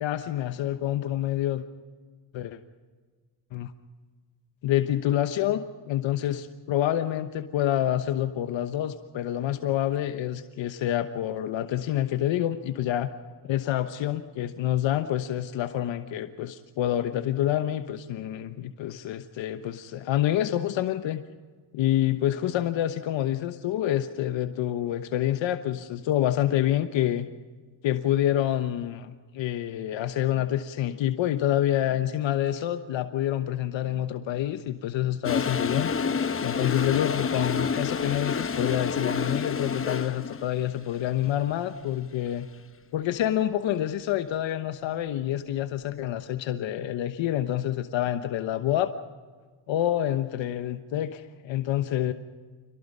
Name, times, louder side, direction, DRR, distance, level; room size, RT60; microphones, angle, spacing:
voice 1, 0.0-1.6 2.3-2.6 3.5-3.7 4.6-13.1 13.4-21.2 21.7-27.3 27.8-35.9 36.4-42.5 42.9-48.9 49.7-52.1, left 12 dB, 80° left, 9 dB, 1.1 m, -27 dB
Toilet flush, 35.2-40.5, left 5 dB, 30° left, 1.0 m, -28 dB
26.5 x 18.5 x 5.4 m, 1.4 s
cardioid pair, 75°, 45 cm